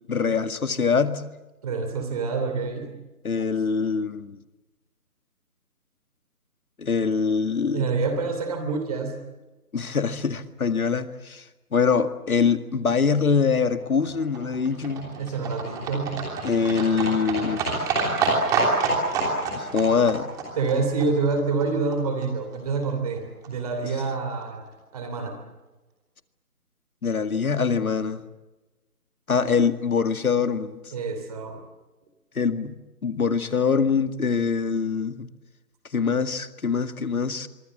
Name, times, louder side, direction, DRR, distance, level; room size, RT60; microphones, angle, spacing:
voice 1, 0.1-1.2 3.2-4.4 6.8-7.8 9.7-11.4 11.7-15.1 16.4-17.6 19.6-20.3 27.0-28.2 29.3-30.8 32.4-32.8 33.0-35.3 35.9-37.5, left 5 dB, 65° left, 9 dB, 2.1 m, -24 dB
voice 2, 1.6-2.9 7.7-9.2 15.2-16.2 20.6-23.2 23.5-25.4 30.9-31.6, right 4 dB, 25° right, 6 dB, 3.0 m, -27 dB
Livestock farm animals working animals, 13.7-22.0 22.2-22.3 22.5-22.6 22.8-22.9 23.1-23.2 23.4-23.5 23.8-23.9 24.1-24.2 24.4-24.5, right 3 dB, 10° right, 3.1 m, -27 dB
26.5 x 24.0 x 7.7 m, 1.1 s
figure-of-eight pair, 165°, 45 cm